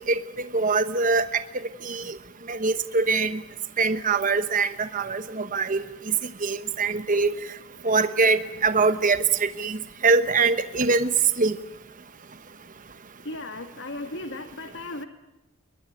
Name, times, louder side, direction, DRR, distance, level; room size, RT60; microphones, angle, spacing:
voice 1, 0.0-1.4 1.8-2.1 2.5-3.4 3.8-5.8 6.4-7.3 7.8-9.8 10.0-11.1 11.4-11.6, right 4 dB, 35° right, 11 dB, 1.0 m, -23 dB
voice 2, 13.2-15.1, left 2 dB, 55° left, 8 dB, 1.7 m, -36 dB
22.0 x 22.0 x 9.0 m, 0.99 s
head